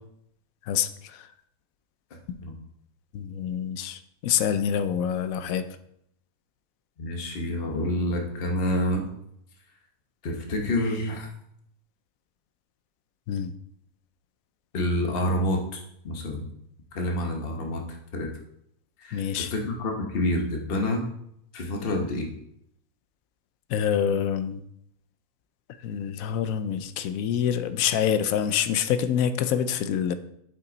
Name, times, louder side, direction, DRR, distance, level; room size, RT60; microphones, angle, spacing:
voice 1, 0.7-1.3 2.3-2.4 3.1-5.7 13.3-13.5 19.1-19.5 23.7-24.6 25.8-30.1, left 8 dB, 80° left, 11 dB, 1.0 m, -26 dB
voice 2, 7.0-9.1 10.2-11.3 14.7-16.4 16.9-17.8 18.1-18.3 19.0-21.0 21.5-22.3, left 1 dB, 45° left, 1 dB, 1.3 m, -28 dB
8.3 x 5.9 x 4.0 m, 0.75 s
omnidirectional pair, 1.5 m